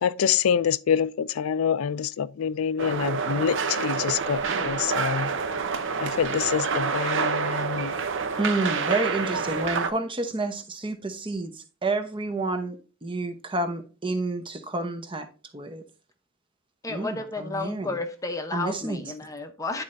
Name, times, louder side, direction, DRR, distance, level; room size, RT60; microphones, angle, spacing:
voice 1, 0.0-5.3 6.0-7.9, left 8 dB, 90° left, 0.4 m, -26 dB
sound 1, 2.8-9.9, right 5 dB, 65° right, 0.7 m, -28 dB
voice 2, 8.4-15.3 15.5-15.8 16.9-17.9 18.5-19.0, right 2 dB, 25° right, 0.8 m, -29 dB
voice 3, 16.8-19.8, left 3 dB, 15° left, 0.7 m, -32 dB
10.5 x 4.2 x 2.6 m
head